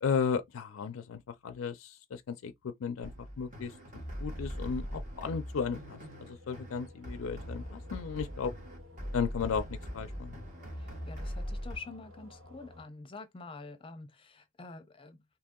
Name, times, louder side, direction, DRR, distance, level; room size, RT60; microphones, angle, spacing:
voice 1, 0.0-3.1 3.4-8.5 9.1-10.4, left 6 dB, 75° left, 0.4 m, -35 dB
sound 1, 3.0-11.8, equal, 35° right, 1.2 m, -41 dB
sound 2, 4.3-12.9, left 2 dB, 65° right, 2.0 m, -54 dB
voice 2, 10.8-15.4, left 4 dB, 25° left, 0.6 m, -47 dB
2.8 x 2.7 x 3.7 m
head